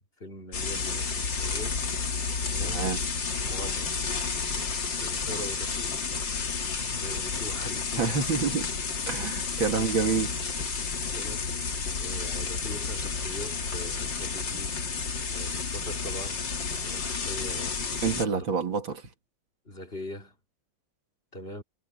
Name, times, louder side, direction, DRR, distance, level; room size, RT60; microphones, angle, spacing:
voice 1, 0.2-1.8 2.5-2.9 3.3-4.0 5.0-6.2 6.9-8.1 9.7-10.0 10.9-15.0 15.3-16.4 16.8-18.5 19.7-20.4 21.3-21.6, left 1 dB, 30° left, 3.5 m, -42 dB
sound 1, 0.5-18.3, left 5 dB, 70° left, 3.0 m, -31 dB
voice 2, 2.6-3.0 8.0-8.7 9.1-10.6 18.0-19.0, right 5 dB, 85° right, 3.1 m, -28 dB
omnidirectional pair, 2.1 m